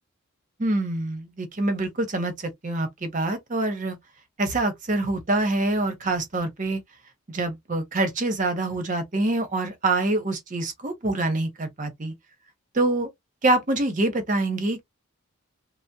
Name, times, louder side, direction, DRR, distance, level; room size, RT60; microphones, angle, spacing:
voice 1, 0.6-4.0 4.4-6.8 7.3-12.1 12.7-13.1 13.4-14.8, right 2 dB, 35° right, 0.9 m, -25 dB
3.4 x 2.0 x 2.7 m
head